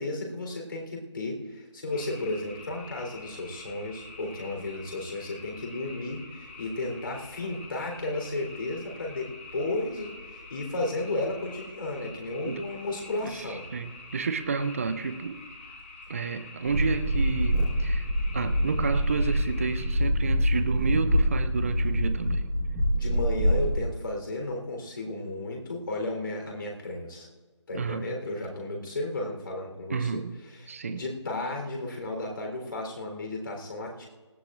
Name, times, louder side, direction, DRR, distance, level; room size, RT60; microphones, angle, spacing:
voice 1, 0.0-13.7 22.9-27.3 27.7-30.2 30.5-34.1, left 2 dB, 45° left, 1 dB, 3.6 m, -34 dB
sound 1, 1.9-19.9, left 3 dB, 25° left, 1.6 m, -46 dB
voice 2, 13.7-15.4 16.1-18.1 18.3-22.5 27.7-28.1 29.9-30.3 30.7-31.0, right 5 dB, 25° right, 10 dB, 0.6 m, -30 dB
sound 2, 16.7-23.9, equal, 5° right, 1.7 m, -25 dB
19.5 x 15.5 x 2.5 m, 1.3 s
figure-of-eight pair, 155°, 16 cm